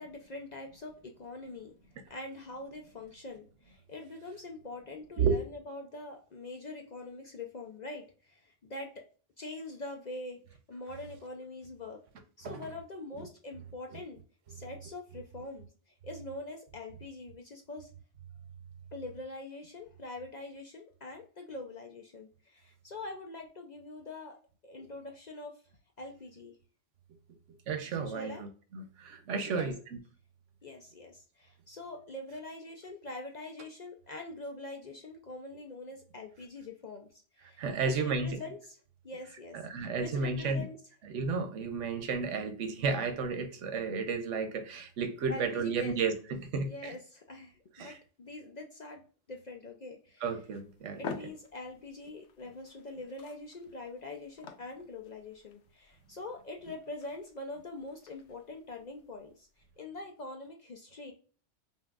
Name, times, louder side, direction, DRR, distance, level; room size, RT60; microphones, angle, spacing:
voice 1, 0.0-1.7 2.1-8.9 9.4-10.4 10.7-12.0 12.4-14.2 14.5-17.9 18.9-24.4 24.6-25.5 26.0-26.6 28.0-28.4 29.5-29.7 30.6-38.8 39.0-40.8 45.3-46.0 46.7-49.0 49.3-50.2 51.0-59.5 59.8-61.1, left 2 dB, 50° left, 2 dB, 0.5 m, -44 dB
voice 2, 27.7-29.7 37.6-38.4 39.5-40.6 41.0-46.9 47.8-48.0 50.2-51.1, right 4 dB, 80° right, 6 dB, 1.1 m, -32 dB
sound 1, 50.3-59.7, left 6 dB, 75° left, 1.0 m, -50 dB
5.5 x 2.6 x 2.4 m, 0.41 s
omnidirectional pair, 1.2 m